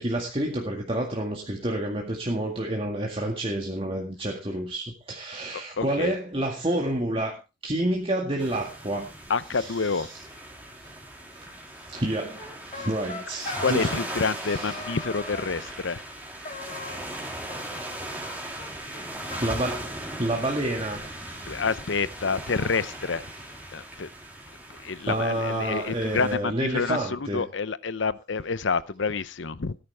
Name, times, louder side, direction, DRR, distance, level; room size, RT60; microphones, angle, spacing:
voice 1, 0.0-9.1 9.5-10.1 11.9-12.5 12.7-13.9 14.2-14.8 19.4-19.9 20.2-21.0 25.1-27.4, right 1 dB, 30° right, 0 dB, 2.0 m, -29 dB
voice 2, 5.5-6.1 9.3-10.1 13.6-16.0 21.5-23.2 23.7-24.1 24.8-29.8, left 4 dB, 75° left, 16 dB, 0.8 m, -28 dB
sound 1, 8.4-26.4, right 1 dB, 10° right, 3.4 m, -38 dB
sound 2, 12.4-14.2 14.5-15.5 16.4-17.2 17.5-18.3 18.6-18.7 18.9-19.0 19.3-20.3, left 2 dB, 35° left, 3.5 m, -39 dB
17.5 x 10.5 x 3.5 m, 0.28 s
head